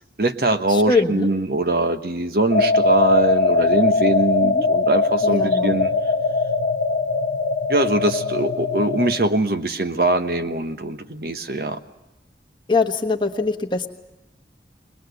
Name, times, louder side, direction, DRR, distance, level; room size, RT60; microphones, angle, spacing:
voice 1, 0.2-5.9 7.7-11.8, right 2 dB, 55° right, 9 dB, 1.1 m, -22 dB
voice 2, 0.7-1.3 4.4-4.7 5.2-5.8 12.7-13.9, left 3 dB, 25° left, 3 dB, 1.3 m, -22 dB
sound 1, 2.5-9.1, left 3 dB, 80° left, 1.1 m, -20 dB
22.5 x 20.5 x 8.1 m, 1.0 s
head